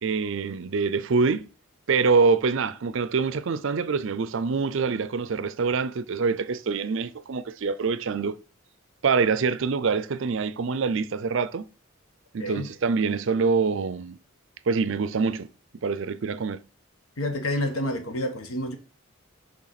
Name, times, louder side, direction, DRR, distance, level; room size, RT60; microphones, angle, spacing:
voice 1, 0.0-1.5 1.9-8.4 9.0-11.7 12.3-14.2 14.7-15.5 15.8-16.6, right 5 dB, 60° right, 0.5 m, -25 dB
voice 2, 12.4-12.7 17.2-18.8, left 1 dB, 90° left, 1.2 m, -29 dB
6.5 x 3.4 x 5.8 m
head